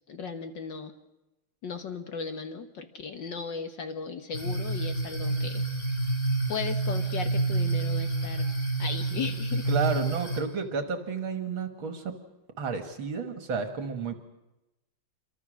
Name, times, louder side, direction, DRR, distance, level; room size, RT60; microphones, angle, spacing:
voice 1, 0.1-0.9 1.6-5.7 6.5-8.5 8.8-9.7, left 5 dB, 60° left, 7 dB, 1.9 m, -36 dB
sound 1, 4.3-10.4, right 2 dB, 35° left, 4.0 m, -28 dB
voice 2, 9.7-12.1 12.6-14.1, right 5 dB, 70° right, 7 dB, 2.4 m, -31 dB
28.0 x 23.5 x 6.4 m, 0.96 s
omnidirectional pair, 2.3 m